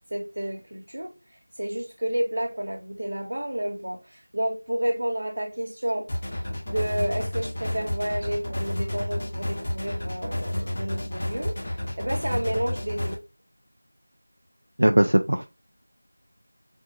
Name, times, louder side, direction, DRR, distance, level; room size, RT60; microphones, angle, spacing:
voice 1, 0.1-1.1 1.6-6.1 6.7-11.6 12.0-13.2, right 1 dB, 50° right, 1.2 m, -30 dB
sound 1, 6.1-13.1, left 1 dB, 20° left, 0.7 m, -31 dB
voice 2, 14.8-15.5, right 1 dB, 80° right, 0.4 m, -19 dB
3.6 x 2.3 x 3.8 m
figure-of-eight pair, 175°, 0 cm